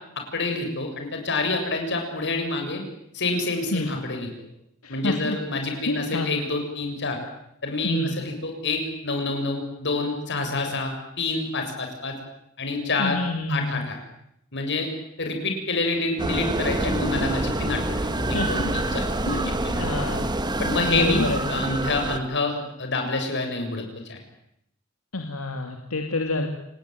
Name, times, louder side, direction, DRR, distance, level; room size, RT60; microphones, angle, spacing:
voice 1, 0.3-2.8 3.1-4.3 4.9-7.2 7.6-12.1 12.6-13.2 13.5-14.0 14.5-14.9 15.2-18.0 18.3-19.0 19.5-19.9 20.6-24.2, left 3 dB, 55° left, 4 dB, 7.3 m, -27 dB
voice 2, 4.8-5.4 5.9-6.3 7.8-8.2 13.0-13.8 18.3-18.8 19.3-19.5 19.8-20.2 20.8-21.4 25.1-26.5, left 2 dB, 85° left, 4 dB, 2.8 m, -28 dB
sound 1, 16.2-22.2, right 1 dB, 20° right, 1.5 m, -26 dB
29.0 x 20.0 x 9.3 m, 0.78 s
head